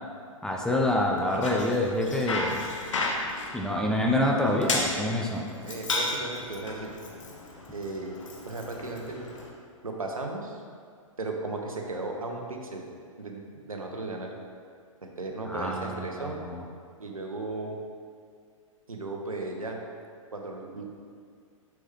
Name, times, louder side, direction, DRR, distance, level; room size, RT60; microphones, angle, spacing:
voice 1, 0.4-2.6 3.5-5.5 15.5-16.6, left 1 dB, 5° left, -1 dB, 0.5 m, -27 dB
Bicycle, 1.1-9.5, left 2 dB, 65° left, 1.1 m, -34 dB
voice 2, 5.6-6.9 7.7-9.3 9.8-10.6 11.2-12.8 13.2-14.3 15.0-16.4 17.0-17.8 18.9-19.8 20.3-20.8, right 2 dB, 85° right, 1 dB, 0.9 m, -36 dB
6.2 x 6.0 x 3.4 m, 2.2 s
figure-of-eight pair, 115°, 17 cm